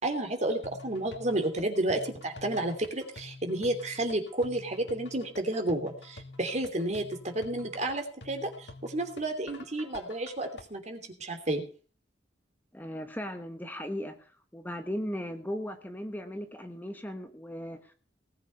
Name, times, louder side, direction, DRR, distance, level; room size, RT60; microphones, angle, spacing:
voice 1, 0.0-11.6, right 1 dB, 40° right, 5 dB, 3.0 m, -31 dB
sound 1, 0.6-10.6, left 2 dB, 70° left, 2.2 m, -48 dB
voice 2, 12.7-17.9, equal, 10° left, 6 dB, 1.2 m, -37 dB
19.0 x 8.1 x 5.6 m, 0.40 s
head